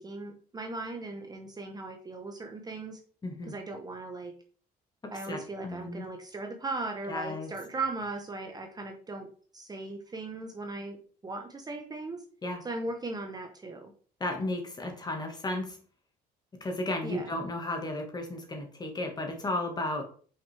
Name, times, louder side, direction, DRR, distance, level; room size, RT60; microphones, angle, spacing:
voice 1, 0.0-3.0 3.5-4.3 5.1-9.3 9.5-12.2 12.6-13.9 17.0-17.3, right 3 dB, 25° right, 4 dB, 0.9 m, -38 dB
voice 2, 3.2-3.5 5.0-6.0 7.1-7.5 12.4-12.6 14.2-15.8 16.6-20.0, left 2 dB, 25° left, 3 dB, 1.6 m, -34 dB
5.7 x 5.1 x 3.4 m, 0.43 s
cardioid pair, 110°, 17 cm